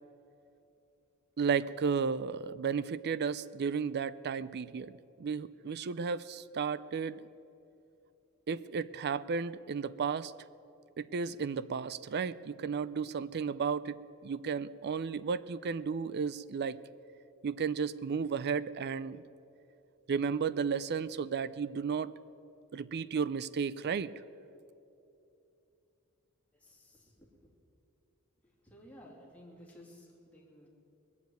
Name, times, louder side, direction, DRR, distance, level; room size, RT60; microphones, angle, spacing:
voice 1, 1.4-4.9 5.2-7.3 8.5-10.3 11.0-16.8 17.4-19.2 20.1-22.1 22.7-24.1, right 6 dB, 50° right, 17 dB, 0.4 m, -33 dB
voice 2, 26.6-27.5 28.6-30.7, equal, 5° left, -3 dB, 2.7 m, -55 dB
20.5 x 7.2 x 9.1 m, 2.8 s
head